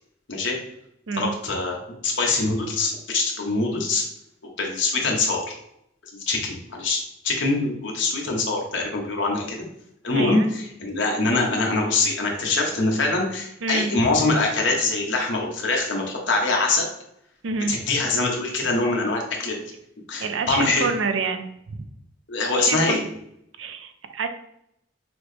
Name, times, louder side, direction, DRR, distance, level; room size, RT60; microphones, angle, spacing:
voice 1, 1.1-4.0 4.6-5.5 6.3-7.0 7.2-9.6 10.0-16.9 17.7-19.6 20.1-20.9 22.3-23.0, left 3 dB, 75° left, 0 dB, 1.0 m, -23 dB
voice 2, 10.1-10.5 13.6-13.9 17.4-17.8 20.2-21.8 22.5-23.1 23.6-24.3, right 4 dB, 85° right, 8 dB, 0.5 m, -27 dB
6.0 x 2.0 x 3.2 m, 0.75 s
head